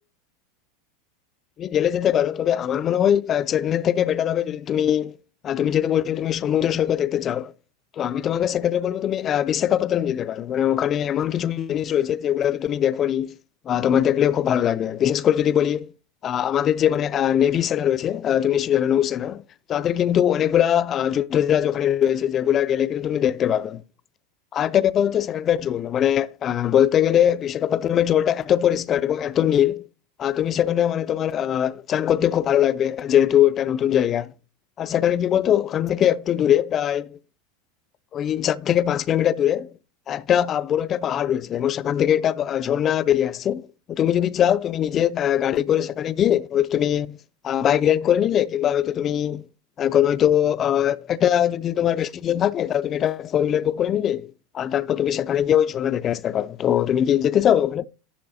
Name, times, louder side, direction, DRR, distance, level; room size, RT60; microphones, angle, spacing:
voice 1, 1.6-5.2 5.4-7.5 8.0-13.4 13.7-15.9 16.2-19.4 19.7-23.8 24.5-29.9 30.2-34.3 34.8-37.2 38.1-39.7 40.1-47.2 47.4-49.5 49.8-54.3 54.5-57.9, left 10 dB, 35° left, 0.4 m, -21 dB
11.5 x 7.2 x 2.7 m
hypercardioid pair, 85°, 0 cm